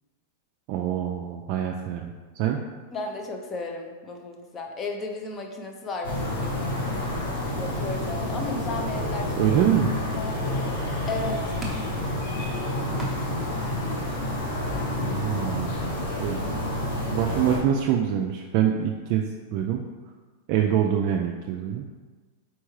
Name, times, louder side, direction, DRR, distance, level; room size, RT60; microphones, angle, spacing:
voice 1, 0.7-2.6 9.4-9.9 15.0-15.8 16.2-16.4 17.1-19.8 20.5-21.8, right 9 dB, 50° right, 1 dB, 0.3 m, -25 dB
voice 2, 2.9-6.9 7.6-9.6 10.1-11.4, left 2 dB, 25° left, 3 dB, 0.6 m, -34 dB
sound 1, 6.0-17.6, left 1 dB, 80° left, 1.4 m, -29 dB
sound 2, 9.1-14.2, right 1 dB, 5° right, 0.9 m, -44 dB
4.5 x 3.5 x 3.1 m, 1.4 s
supercardioid pair, 135°, 0 cm